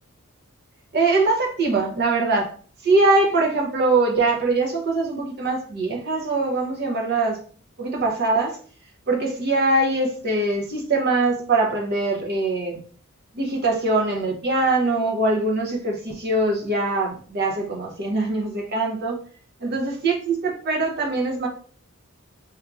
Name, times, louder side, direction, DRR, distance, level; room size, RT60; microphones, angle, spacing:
voice 1, 0.9-2.5 2.8-7.4 7.8-8.6 9.1-12.8 13.3-19.2 19.6-21.5, right 2 dB, 50° right, 0.7 m, -22 dB
4.4 x 2.4 x 2.4 m
head